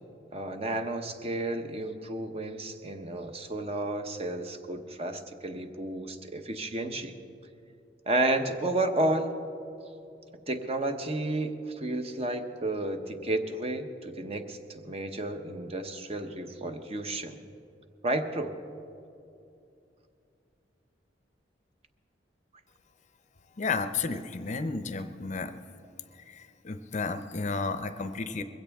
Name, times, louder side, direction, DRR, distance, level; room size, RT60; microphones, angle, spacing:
voice 1, 0.3-7.2 8.1-9.3 10.5-17.4 18.0-18.5, right 2 dB, 35° right, 6 dB, 0.9 m, -32 dB
voice 2, 23.6-25.5 26.3-28.4, left 4 dB, 40° left, 10 dB, 0.6 m, -32 dB
21.5 x 16.0 x 3.5 m, 2.6 s
head